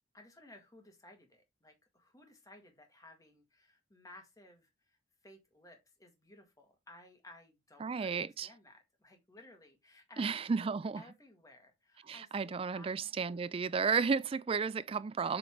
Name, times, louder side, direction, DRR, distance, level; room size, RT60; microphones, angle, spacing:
voice 1, 0.1-10.7 10.9-12.9 13.2-13.7 15.3-15.4, left 1 dB, 20° left, 1.7 m, -58 dB
voice 2, 7.8-8.5 10.2-11.0 12.1-15.4, right 5 dB, 30° right, 0.3 m, -33 dB
7.6 x 3.9 x 3.6 m
head